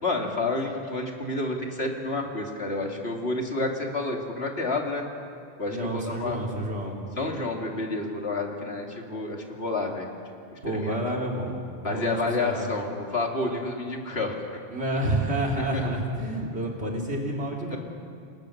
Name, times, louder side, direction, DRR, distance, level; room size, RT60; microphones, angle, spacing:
voice 1, 0.0-5.0 5.6-6.4 7.2-10.1 10.5-10.9 11.8-14.3 15.7-15.8 17.7-17.8, left 2 dB, 75° left, 1 dB, 2.9 m, -29 dB
voice 2, 5.7-7.0 10.6-12.7 14.7-17.8, right 1 dB, 85° right, -1 dB, 3.6 m, -29 dB
29.0 x 19.0 x 6.6 m, 2.4 s
omnidirectional pair, 1.1 m